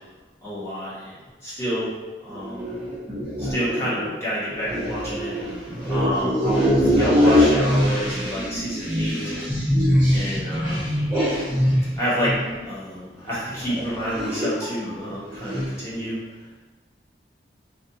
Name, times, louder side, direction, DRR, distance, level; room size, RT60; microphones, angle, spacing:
voice 1, 0.4-1.9 2.2-2.8 3.4-5.3 5.9-9.3 10.1-11.0 12.0-16.2, equal, 15° left, -9 dB, 0.8 m, -29 dB
voice 2, 2.3-3.6 4.7-11.9 14.2-14.5 15.4-15.7, equal, 10° right, -10 dB, 0.4 m, -22 dB
2.4 x 2.3 x 2.7 m, 1.2 s
head